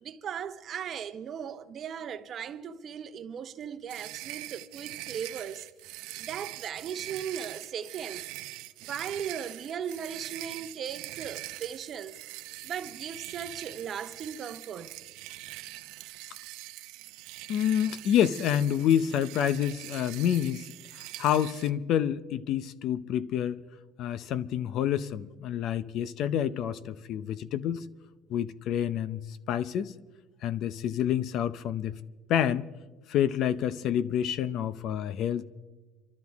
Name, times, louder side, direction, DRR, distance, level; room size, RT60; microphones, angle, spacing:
voice 1, 0.0-5.7 6.2-8.3 8.8-12.2 12.6-14.9, right 8 dB, 40° right, 0.8 m, -37 dB
sound 1, 3.9-21.7, right 18 dB, 75° right, 0.7 m, -43 dB
voice 2, 17.5-20.7 21.2-23.6 24.0-27.9 28.3-29.2 29.5-29.9 30.4-32.0 32.3-32.7 33.1-35.5, left 10 dB, 55° left, 0.6 m, -28 dB
27.0 x 13.0 x 3.5 m
cardioid pair, 145°, 0 cm